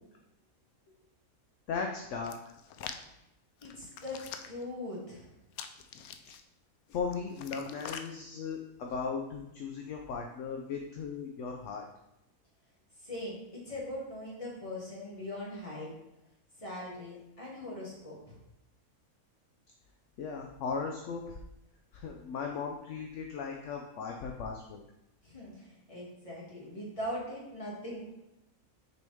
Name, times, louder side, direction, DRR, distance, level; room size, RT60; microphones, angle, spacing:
voice 1, 1.7-2.4 6.9-11.9 20.2-21.4 21.9-24.8, left 5 dB, 65° left, 2 dB, 0.9 m, -37 dB
Hands, 2.2-3.0 3.6-4.6 5.5-6.4 6.9-8.1 8.8-9.1, left 8 dB, 90° left, 1.0 m, -45 dB
voice 2, 3.6-4.2 4.5-5.3 13.0-13.4 13.7-15.9 16.6-18.4 25.2-28.0, left 1 dB, 25° left, -6 dB, 2.3 m, -41 dB
6.3 x 5.3 x 3.5 m, 0.89 s
omnidirectional pair, 1.5 m